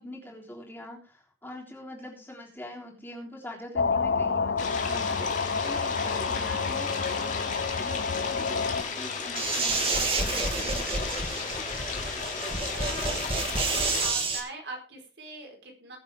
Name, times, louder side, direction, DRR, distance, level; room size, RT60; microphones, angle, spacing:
voice 1, 0.0-11.0, left 1 dB, 10° left, -1 dB, 3.6 m, -43 dB
sound 1, 3.7-8.8, left 5 dB, 70° left, 0.6 m, -29 dB
sound 2, 4.6-14.1, left 5 dB, 40° left, 2.7 m, -34 dB
sound 3, 9.4-14.4, right 3 dB, 30° right, 2.4 m, -29 dB
voice 2, 12.7-13.4 13.7-16.0, right 2 dB, 65° right, 2 dB, 4.7 m, -42 dB
21.0 x 7.4 x 3.7 m, 0.36 s
head